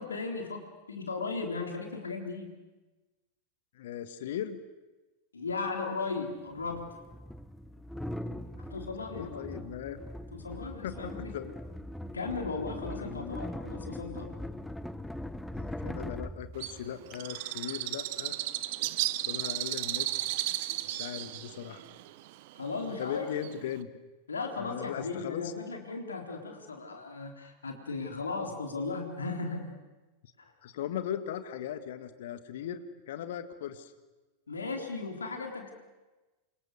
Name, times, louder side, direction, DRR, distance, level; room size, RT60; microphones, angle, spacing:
voice 1, 0.0-2.5 5.3-6.9 8.6-9.4 10.3-11.3 12.1-14.3 22.6-23.3 24.3-29.8 30.4-30.5 34.5-35.7, left 4 dB, 75° left, 3 dB, 3.7 m, -36 dB
voice 2, 3.8-4.6 9.1-10.0 10.8-11.5 13.0-13.4 15.6-18.4 19.3-20.1 20.9-21.8 23.0-23.9 24.6-25.5 30.6-33.9, left 10 dB, 55° left, 11 dB, 1.7 m, -38 dB
sound 1, 5.5-5.6 6.6-17.2, left 1 dB, 5° left, 1.0 m, -41 dB
Bird, 16.6-23.8, right 16 dB, 50° right, 1.0 m, -34 dB
28.5 x 24.5 x 6.7 m, 1.2 s
figure-of-eight pair, 90°, 0 cm